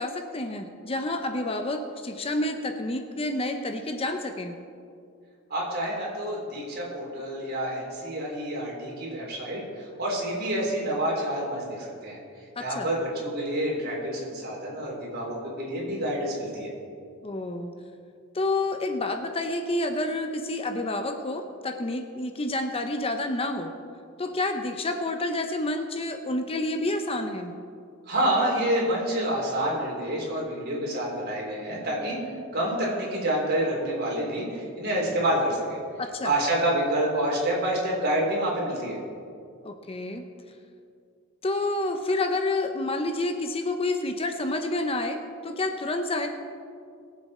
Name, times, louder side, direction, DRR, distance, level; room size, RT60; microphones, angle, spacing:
voice 1, 0.0-4.5 12.6-12.9 17.2-17.7 18.3-23.7 24.2-27.5 36.0-36.3 39.6-40.2 41.4-46.3, left 2 dB, 25° left, 6 dB, 0.7 m, -29 dB
voice 2, 5.5-12.2 12.6-16.7 28.1-32.2 32.5-35.8 36.2-39.0, right 1 dB, 50° right, -3 dB, 3.6 m, -28 dB
21.0 x 7.6 x 4.3 m, 2.4 s
head